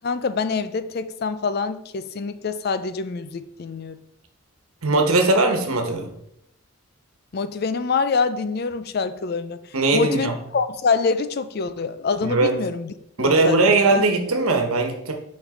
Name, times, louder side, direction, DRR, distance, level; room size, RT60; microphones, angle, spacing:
voice 1, 0.0-4.0 7.3-9.6 9.9-12.9 13.2-14.0, left 4 dB, 45° left, 12 dB, 0.4 m, -25 dB
voice 2, 4.8-6.1 9.7-10.3 12.2-12.5 13.2-15.1, right 2 dB, 90° right, 4 dB, 1.3 m, -19 dB
6.3 x 5.3 x 3.8 m, 0.75 s
head